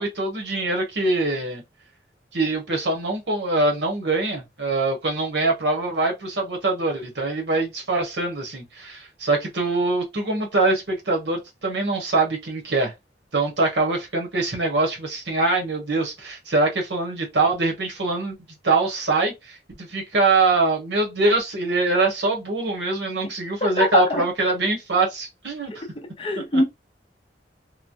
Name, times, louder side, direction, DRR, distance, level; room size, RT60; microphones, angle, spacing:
voice 1, 0.0-1.6 2.3-12.9 13.3-18.4 18.6-25.8 26.5-26.6, right 3 dB, 75° right, 1.1 m, -23 dB
voice 2, 23.6-24.2 25.7-26.6, left 2 dB, 30° left, 0.5 m, -23 dB
3.1 x 2.1 x 2.6 m
head